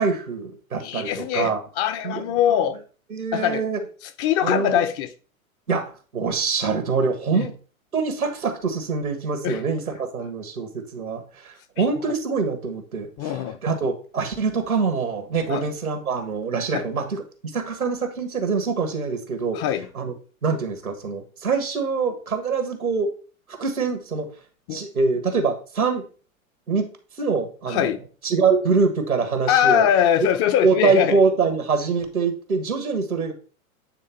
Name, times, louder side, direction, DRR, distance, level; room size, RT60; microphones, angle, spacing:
voice 1, 0.0-1.6 2.0-2.2 3.1-3.8 4.4-4.8 5.7-7.5 7.9-17.2 17.5-19.6 19.9-20.1 20.4-23.1 23.6-24.3 24.7-26.1 26.7-26.9 27.2-27.9 28.2-29.9 30.2-30.3 30.6-33.3, right 4 dB, 85° right, 1.8 m, -24 dB
voice 2, 0.8-2.8 3.3-3.6 4.2-5.1 7.3-7.5 9.4-9.6 13.2-13.6 15.5-15.6 16.7-16.8 19.5-19.9 24.7-24.8 27.7-28.0 29.5-31.2, left 10 dB, 35° left, 0.8 m, -22 dB
9.0 x 3.5 x 4.5 m
figure-of-eight pair, 105°, 42 cm